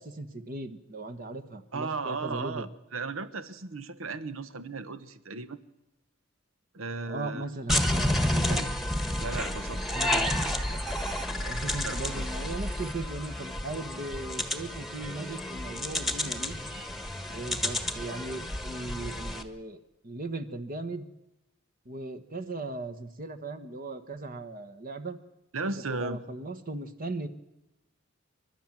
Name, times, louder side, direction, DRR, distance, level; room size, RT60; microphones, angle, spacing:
voice 1, 0.0-2.7 7.0-8.6 9.9-10.8 11.3-16.5 17.3-21.1 21.8-25.2 25.9-27.3, right 2 dB, 45° right, 7 dB, 1.3 m, -38 dB
voice 2, 1.7-5.6 6.7-7.5 8.2-8.7 9.2-9.8 11.8-12.0 25.5-26.2, right 3 dB, 80° right, 14 dB, 1.1 m, -35 dB
sound 1, 7.7-19.4, left 1 dB, ahead, 1.4 m, -31 dB
29.0 x 12.0 x 7.5 m, 0.94 s
head